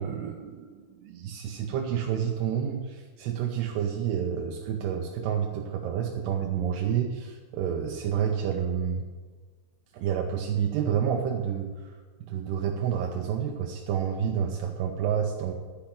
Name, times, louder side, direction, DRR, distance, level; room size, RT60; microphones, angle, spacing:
voice 1, 0.0-9.0 9.9-11.7 12.2-15.5, right 8 dB, 80° right, 1 dB, 2.9 m, -29 dB
12.0 x 5.9 x 8.7 m, 1.4 s
omnidirectional pair, 4.7 m